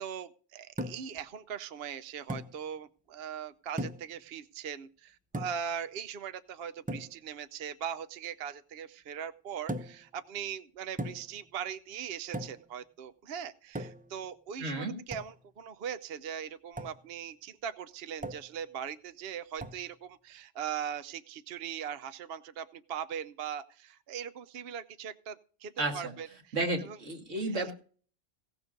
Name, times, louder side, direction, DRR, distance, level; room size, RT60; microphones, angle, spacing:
voice 1, 0.0-27.0 27.4-27.7, right 8 dB, 60° right, 12 dB, 0.9 m, -40 dB
sound 1, 0.8-1.2 2.3-2.6 3.8-4.2 5.3-5.7 6.9-7.2 9.7-10.1 11.0-11.4 12.3-12.7 13.8-14.2 15.1-15.4 16.8-17.0 18.2-18.6 19.6-19.9, right 1 dB, 10° right, 0.5 m, -38 dB
voice 2, 14.6-15.0 25.8-26.1 26.5-27.7, right 2 dB, 90° right, 4 dB, 2.4 m, -32 dB
17.0 x 7.0 x 5.2 m, 0.42 s
omnidirectional pair, 1.2 m